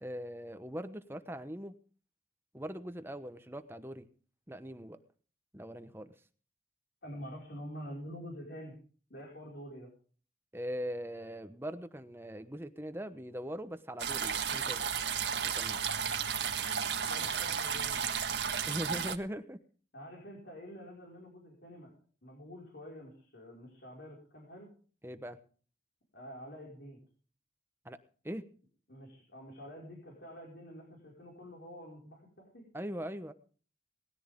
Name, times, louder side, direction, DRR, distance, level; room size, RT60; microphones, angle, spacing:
voice 1, 0.0-1.7 2.5-4.1 4.5-5.0 5.5-6.1 10.5-14.8 15.4-15.8 18.7-19.6 25.0-25.4 27.8-28.0 28.2-28.4 32.7-33.3, equal, 15° right, 10 dB, 1.0 m, -41 dB
voice 2, 7.0-8.8 9.1-9.9 17.1-18.1 19.9-21.9 22.2-24.7 26.1-27.0 28.9-32.6, equal, 70° left, -2 dB, 5.4 m, -47 dB
sound 1, 14.0-19.2, right 7 dB, 80° right, 1.6 m, -33 dB
19.5 x 14.5 x 3.7 m, 0.41 s
head